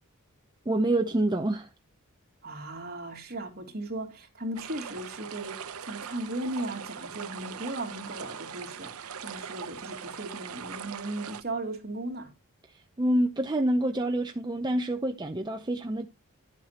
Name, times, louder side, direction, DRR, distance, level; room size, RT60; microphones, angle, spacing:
voice 1, 0.7-1.7 13.0-16.1, right 1 dB, 20° right, 0.7 m, -27 dB
voice 2, 2.4-12.3, right 1 dB, 45° right, 2.8 m, -37 dB
sound 1, 4.6-11.4, right 7 dB, 75° right, 0.8 m, -41 dB
11.5 x 8.2 x 2.9 m
head